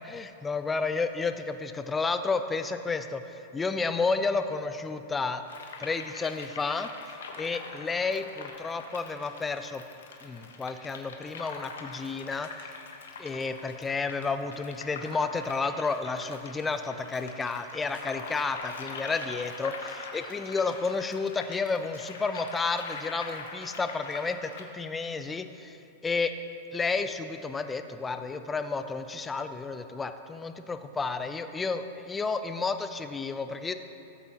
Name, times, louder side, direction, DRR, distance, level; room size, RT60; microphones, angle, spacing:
voice 1, 0.0-5.4 5.8-6.9 7.4-9.8 10.2-12.7 13.2-26.3 26.7-33.7, left 4 dB, 15° left, 9 dB, 0.6 m, -31 dB
sound 1, 5.5-24.7, left 4 dB, 80° left, 1.2 m, -43 dB
16.5 x 8.2 x 2.9 m, 2.7 s
hypercardioid pair, 115°, 0 cm